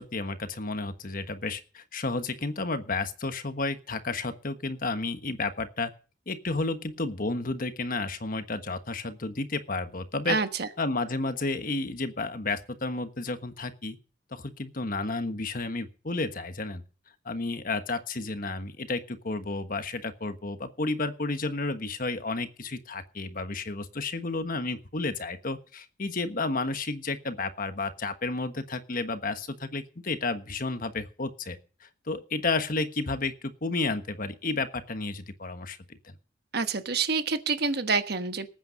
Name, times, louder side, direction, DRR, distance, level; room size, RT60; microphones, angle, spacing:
voice 1, 0.0-5.9 6.3-10.4 10.8-14.0 14.3-16.8 17.2-35.8 36.0-36.1, left 3 dB, 45° left, 9 dB, 1.3 m, -32 dB
voice 2, 10.3-10.7 36.5-38.5, right 4 dB, 55° right, 9 dB, 1.2 m, -27 dB
19.0 x 9.1 x 5.2 m, 0.37 s
head